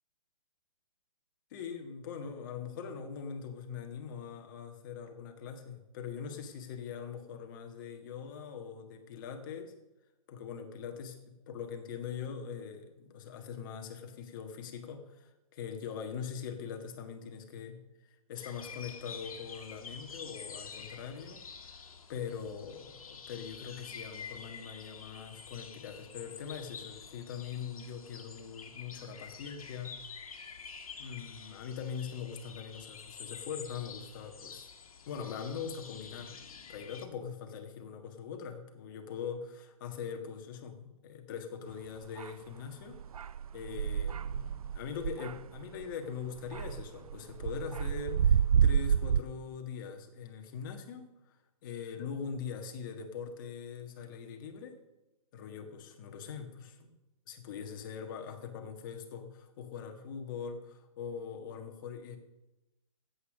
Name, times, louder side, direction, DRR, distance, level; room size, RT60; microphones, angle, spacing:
voice 1, 1.5-9.7 10.3-17.8 18.3-21.8 22.1-30.0 31.0-34.7 35.1-36.3 36.7-43.0 43.5-51.4 51.6-54.8 55.3-56.9 57.3-62.2, left 6 dB, 35° left, 5 dB, 1.5 m, -42 dB
sound 1, 18.3-37.1, left 6 dB, 75° left, 1.7 m, -48 dB
sound 2, 42.2-42.3 42.9-45.9 46.4-49.2, right 8 dB, 90° right, 0.4 m, -29 dB
9.6 x 8.4 x 6.4 m, 0.96 s
hypercardioid pair, 155°, 18 cm